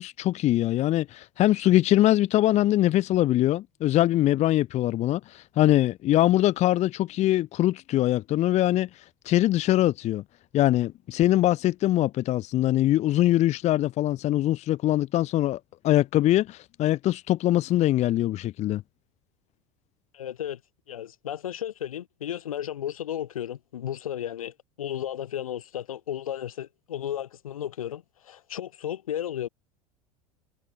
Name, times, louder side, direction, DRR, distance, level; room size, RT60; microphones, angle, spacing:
voice 1, 0.0-10.2 10.5-18.8, left 14 dB, 40° left, 0.9 m, -23 dB
voice 2, 20.1-20.6 20.9-29.5, left 10 dB, 75° left, 2.3 m, -34 dB
figure-of-eight pair, 80°, 18 cm